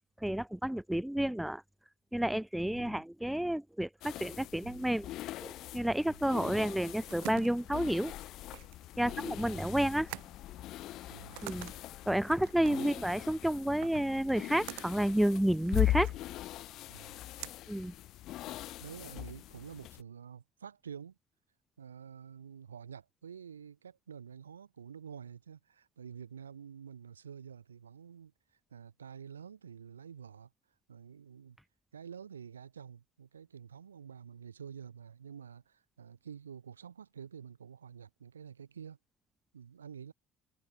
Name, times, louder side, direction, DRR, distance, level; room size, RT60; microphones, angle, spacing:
voice 1, 0.2-1.6 2.1-5.1 5.4-8.1 9.0-10.1 11.4-11.7 12.0-16.1 17.7-17.9, right 1 dB, 5° right, 1.7 m, -30 dB
voice 2, 2.7-3.0 4.6-4.9 6.1-6.6 9.0-9.2 11.1-11.4 12.6-12.9 16.9-17.2 18.8-21.2 21.8-28.3 28.7-30.5 30.9-31.6 31.9-39.0 39.5-40.1, right 7 dB, 85° right, 7.8 m, -49 dB
sound 1, 4.0-20.0, left 15 dB, 60° left, 2.3 m, -40 dB
sound 2, 6.9-18.6, right 40 dB or more, 70° right, 2.7 m, -49 dB
figure-of-eight pair, 50°, 0 cm